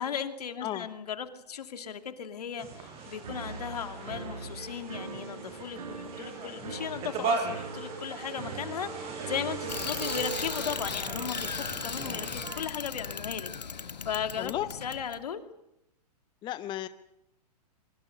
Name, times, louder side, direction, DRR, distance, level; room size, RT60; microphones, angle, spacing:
voice 1, 0.0-13.5 13.7-14.5 14.8-15.4, left 7 dB, 70° left, 7 dB, 2.6 m, -36 dB
sound 1, 2.6-12.6, right 4 dB, 30° right, 5.8 m, -38 dB
sound 2, 3.2-10.1, right 4 dB, 70° right, 4.2 m, -43 dB
Bicycle, 9.7-15.2, left 6 dB, 85° left, 1.3 m, -37 dB
voice 2, 14.4-14.7 16.4-16.9, left 13 dB, 20° left, 12 dB, 0.8 m, -33 dB
24.0 x 24.0 x 6.7 m, 0.81 s
hypercardioid pair, 120°, 21 cm